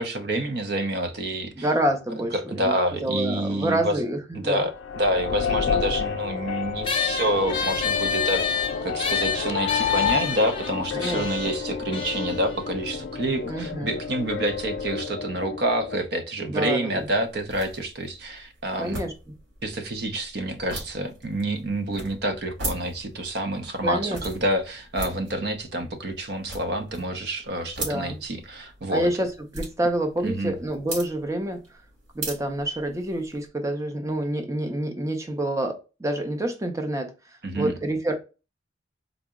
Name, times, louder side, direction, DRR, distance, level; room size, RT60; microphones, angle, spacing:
voice 1, 0.0-1.6 2.3-4.0 4.4-19.0 19.6-29.1 30.2-30.6 37.4-37.8, right 1 dB, 60° right, 0.6 m, -28 dB
voice 2, 1.6-2.7 3.0-4.7 10.9-11.5 13.4-13.9 16.4-17.1 18.8-19.3 23.8-24.2 27.8-28.2 28.9-31.6 32.1-37.1 37.5-38.1, right 1 dB, 15° right, 0.5 m, -27 dB
sound 1, 4.6-16.0, left 7 dB, 85° left, 0.4 m, -30 dB
sax jazz, 6.8-13.6, left 6 dB, 25° left, 0.6 m, -29 dB
sound 2, 17.0-33.5, right 2 dB, 90° right, 1.8 m, -40 dB
3.7 x 2.0 x 3.5 m
head